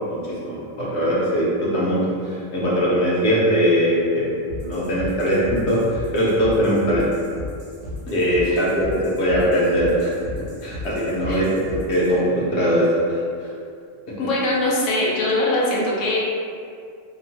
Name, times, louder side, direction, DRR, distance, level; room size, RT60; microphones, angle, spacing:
voice 1, 0.1-7.1 8.1-10.1 10.6-11.6 11.9-13.5, equal, 65° left, -7 dB, 0.9 m, -21 dB
sound 1, 4.5-12.1, left 1 dB, 70° right, 1.1 m, -35 dB
voice 2, 14.2-16.5, left 1 dB, 90° left, -5 dB, 1.0 m, -22 dB
2.9 x 2.1 x 2.8 m, 2.3 s
omnidirectional pair, 1.3 m